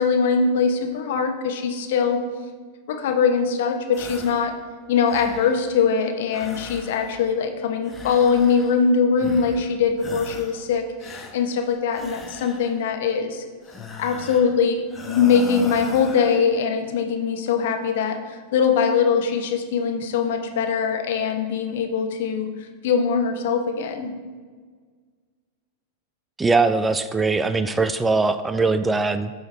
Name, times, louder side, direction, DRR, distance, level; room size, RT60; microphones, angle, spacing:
voice 1, 0.0-2.2 2.9-4.5 4.9-13.4 14.0-22.5 22.8-24.1, left 6 dB, 60° left, 5 dB, 1.0 m, -22 dB
sound 1, 3.9-4.5 4.8-5.7 6.3-7.4 7.8-8.9 9.2-9.7 10.0-10.6 11.0-12.9 13.6-14.6 14.9-16.4, left 3 dB, 15° left, 1.1 m, -39 dB
voice 2, 26.4-29.3, right 3 dB, 15° right, 12 dB, 0.3 m, -21 dB
13.0 x 4.4 x 3.4 m, 1.5 s
figure-of-eight pair, 95°, 0 cm